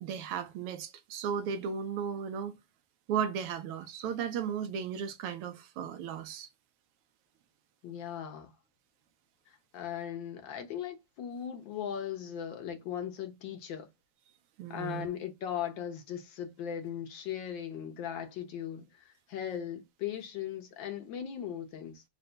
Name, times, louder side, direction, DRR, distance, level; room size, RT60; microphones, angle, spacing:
voice 1, 0.0-2.5 3.1-6.5 14.6-15.1, right 7 dB, 85° right, 1.7 m, -35 dB
voice 2, 7.8-8.5 9.5-13.9 14.7-22.0, left 9 dB, 65° left, 1.5 m, -38 dB
4.3 x 2.2 x 3.7 m
omnidirectional pair, 2.4 m